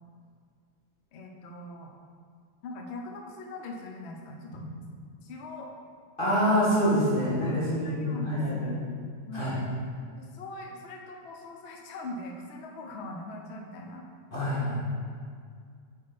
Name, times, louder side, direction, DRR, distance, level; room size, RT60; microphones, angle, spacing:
voice 1, 1.1-1.9 2.6-4.6 5.2-5.7 7.5-8.9 9.3-9.6 10.2-14.0 14.7-14.8, left 2 dB, 75° left, 1 dB, 0.6 m, -42 dB
voice 2, 6.2-8.8 9.3-9.5 14.3-14.8, equal, 30° left, -9 dB, 1.8 m, -26 dB
7.0 x 4.7 x 4.0 m, 2.1 s
omnidirectional pair, 2.1 m